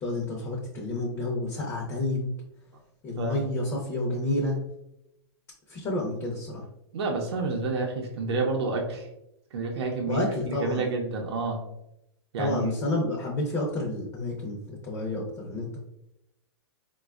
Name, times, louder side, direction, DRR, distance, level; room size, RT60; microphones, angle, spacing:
voice 1, 0.0-2.3 3.0-4.6 5.7-6.6 10.1-10.9 12.4-15.8, left 2 dB, 25° left, -2 dB, 0.7 m, -30 dB
voice 2, 6.9-9.1 9.5-10.2 10.5-11.6 12.3-12.7, right 3 dB, 70° right, 1 dB, 0.7 m, -29 dB
4.1 x 2.3 x 2.3 m, 0.84 s
hypercardioid pair, 140°, 14 cm